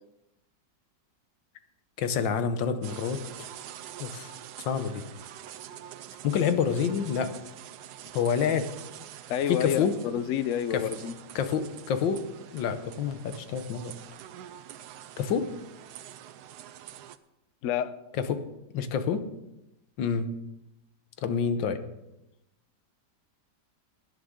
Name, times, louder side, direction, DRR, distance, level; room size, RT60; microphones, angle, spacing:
voice 1, 2.0-3.5 4.0-4.3 4.6-5.0 6.2-7.3 8.1-8.7 9.5-9.9 10.7-10.8 11.3-12.2 12.5-13.9 15.2-15.5 18.2-18.4 18.7-19.2 20.0-20.3 21.2-21.8, left 7 dB, 90° left, 1.6 m, -27 dB
sound 1, 2.8-17.2, right 11 dB, 70° right, 1.1 m, -46 dB
voice 2, 9.3-11.1 17.6-17.9, left 9 dB, 65° left, 0.7 m, -29 dB
17.5 x 10.0 x 3.7 m
omnidirectional pair, 2.0 m